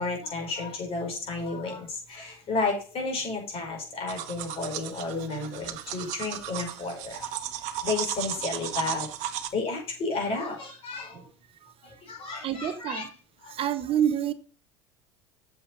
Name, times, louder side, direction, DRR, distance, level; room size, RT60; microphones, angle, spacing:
voice 1, 0.0-7.3 7.8-11.2 11.8-13.0 13.4-13.6, left 3 dB, 45° left, 5.6 m, -32 dB
sound 1, 4.1-9.5, right 11 dB, 65° right, 1.3 m, -35 dB
voice 2, 12.4-13.1 13.5-14.3, right 9 dB, 45° right, 0.9 m, -27 dB
7.8 x 7.4 x 5.3 m
hypercardioid pair, 80°, 13 cm